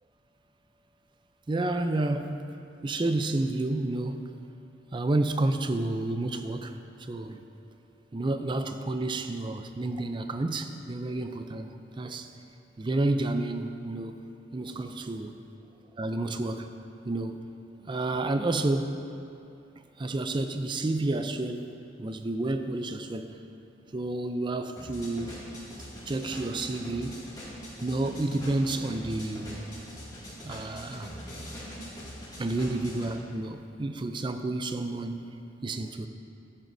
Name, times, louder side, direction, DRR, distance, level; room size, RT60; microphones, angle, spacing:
voice 1, 1.5-2.4 2.8-4.3 4.9-6.8 7.1-7.4 8.1-12.3 12.8-14.2 14.5-15.3 16.0-16.7 17.1-17.4 17.8-19.0 20.0-23.4 23.9-25.4 26.1-27.3 27.8-29.6 30.4-31.1 32.4-35.3 35.6-36.1, right 2 dB, 25° right, 8 dB, 0.4 m, -30 dB
sound 1, 24.8-33.1, equal, 20° left, 2.1 m, -42 dB
13.5 x 7.8 x 2.6 m, 2.6 s
head